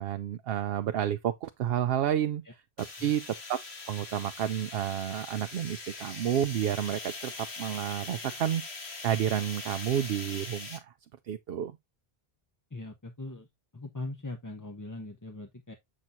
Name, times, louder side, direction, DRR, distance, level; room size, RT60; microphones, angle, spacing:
voice 1, 0.0-2.4 2.8-3.2 3.5-8.6 9.0-10.9 11.3-11.8, right 10 dB, 70° right, 0.8 m, -30 dB
sound 1, 2.8-10.8, left 3 dB, 85° left, 1.8 m, -42 dB
voice 2, 12.7-13.5 13.7-15.7, left 2 dB, 20° left, 0.7 m, -40 dB
7.4 x 6.0 x 2.6 m
omnidirectional pair, 1.0 m